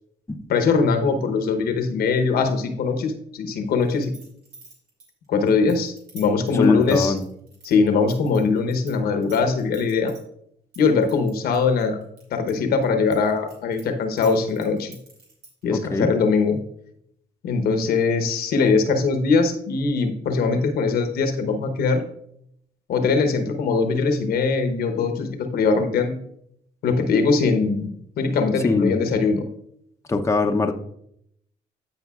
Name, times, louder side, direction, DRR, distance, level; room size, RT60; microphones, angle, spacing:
voice 1, 0.5-4.1 5.3-7.1 7.6-10.1 10.8-12.0 12.3-14.9 15.6-16.6 17.4-22.0 22.9-26.2 26.8-27.9 28.2-29.5, left 4 dB, 75° left, 6 dB, 1.0 m, -21 dB
sound 1, 3.8-8.9 9.2-10.2 10.7-12.5 12.8-15.6, right 3 dB, 85° right, 2.7 m, -46 dB
voice 2, 6.5-7.2 15.7-16.1 28.6-29.1 30.1-30.7, left 3 dB, 20° left, 5 dB, 0.7 m, -22 dB
14.0 x 5.2 x 2.4 m, 0.73 s
cardioid pair, 80°, 16 cm